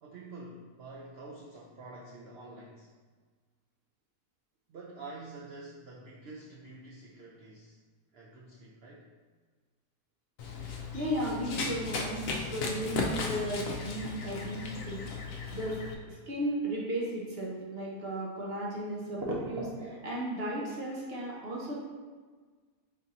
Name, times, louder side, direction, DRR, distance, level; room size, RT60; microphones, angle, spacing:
voice 1, 0.0-2.9 4.7-7.8 8.1-9.1, right 2 dB, 85° right, -3 dB, 0.5 m, -47 dB
Run, 10.4-15.9, left 4 dB, 70° left, 0.9 m, -36 dB
voice 2, 10.9-15.0 15.5-15.8 16.1-21.8, right 1 dB, 50° right, -4 dB, 0.8 m, -35 dB
3.8 x 2.6 x 4.1 m, 1.5 s
omnidirectional pair, 1.7 m